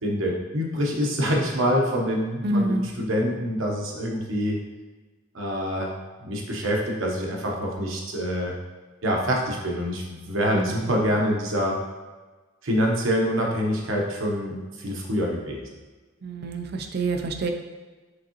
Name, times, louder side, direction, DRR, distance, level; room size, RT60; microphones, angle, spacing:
voice 1, 0.0-4.6 5.3-5.9 6.2-8.6 9.0-11.8 12.6-15.7, equal, 85° right, -1 dB, 0.9 m, -26 dB
voice 2, 2.4-2.9 10.5-11.1 16.2-17.5, right 2 dB, 55° right, 5 dB, 0.5 m, -27 dB
5.0 x 3.6 x 3.0 m, 1.3 s
head